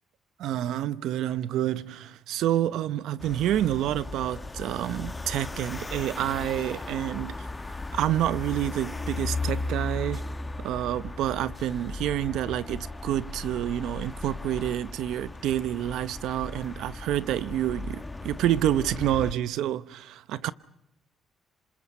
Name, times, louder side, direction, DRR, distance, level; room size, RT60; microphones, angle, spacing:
voice 1, 0.4-7.3 7.7-10.2 10.6-20.5, right 12 dB, 85° right, 0.8 m, -28 dB
sound 1, 3.2-19.3, left 2 dB, 20° left, 1.3 m, -36 dB
27.5 x 26.5 x 5.5 m
cardioid pair, 90°, 0 cm